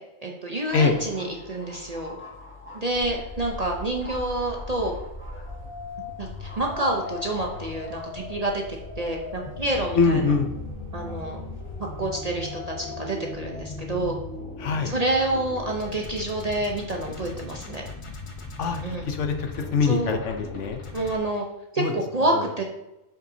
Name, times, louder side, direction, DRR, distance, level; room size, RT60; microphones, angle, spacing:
voice 1, 0.2-2.2 2.7-5.0 6.2-8.6 9.0-10.2 10.9-11.4 12.0-14.2 14.8-17.8 18.8-19.1 19.8-20.2 20.9-21.5 21.7-22.6, right 2 dB, 40° right, 0 dB, 0.6 m, -28 dB
sound 1, 0.6-12.6, left 1 dB, 10° left, 1.3 m, -47 dB
sound 2, 2.9-21.2, left 3 dB, 30° left, 0.7 m, -38 dB
voice 2, 9.9-10.5 14.6-14.9 18.6-18.8 19.1-20.8 21.8-21.9 22.3-22.4, left 5 dB, 70° left, 5 dB, 1.0 m, -23 dB
7.4 x 5.6 x 2.7 m, 0.94 s
omnidirectional pair, 1.4 m